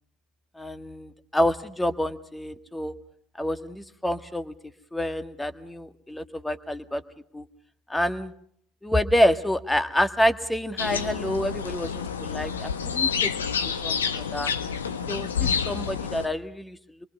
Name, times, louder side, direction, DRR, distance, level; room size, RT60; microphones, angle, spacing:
voice 1, 0.6-2.9 3.4-4.5 4.9-7.0 7.3-7.4 7.9-8.3 8.8-13.3 13.8-14.5 15.1-16.8, equal, 10° left, 10 dB, 1.7 m, -27 dB
sound 1, 10.8-16.3, left 7 dB, 80° left, 1.2 m, -28 dB
27.0 x 23.5 x 5.4 m, 0.64 s
figure-of-eight pair, 65°, 0 cm